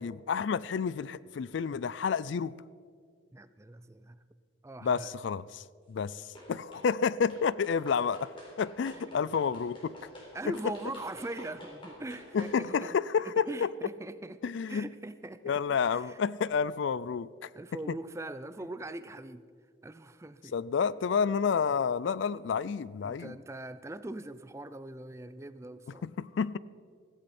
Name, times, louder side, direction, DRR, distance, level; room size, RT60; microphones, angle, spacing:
voice 1, 0.0-2.6 4.8-8.3 8.6-10.0 10.5-10.7 12.3-13.7 14.4-14.8 15.4-17.5 20.5-23.4 26.0-26.6, left 6 dB, 65° left, 19 dB, 0.3 m, -30 dB
voice 2, 3.3-4.2 4.6-5.1 8.9-9.0 10.3-13.0 13.2-15.5 15.9-16.2 17.5-19.4 19.8-20.5 23.0-26.0, right 2 dB, 15° right, 13 dB, 0.4 m, -41 dB
sound 1, 6.3-6.9 7.3-12.6, left 1 dB, 25° left, 3.7 m, -49 dB
16.0 x 15.0 x 4.3 m, 2.1 s
head